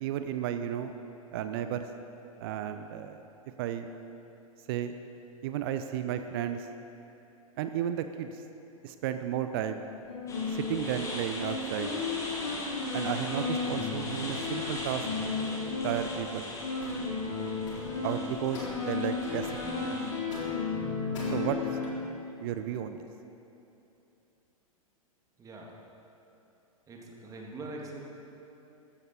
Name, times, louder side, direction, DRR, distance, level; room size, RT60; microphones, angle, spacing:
voice 1, 0.0-0.9 1.3-1.9 2.4-3.2 3.6-3.9 4.7-4.9 5.4-6.7 7.6-8.4 8.8-9.8 10.5-11.9 12.9-15.1 15.8-16.5 18.0-20.0 21.3-21.6 22.4-23.0, right 10 dB, 40° right, 9 dB, 0.6 m, -33 dB
sound 1, 9.8-21.9, left 4 dB, 60° left, 3.7 m, -34 dB
sound 2, 10.3-20.1, left 2 dB, 15° left, 2.3 m, -40 dB
voice 2, 26.9-28.0, right 2 dB, 20° right, -1 dB, 2.2 m, -42 dB
14.5 x 13.5 x 4.3 m, 2.9 s
figure-of-eight pair, 100°, 18 cm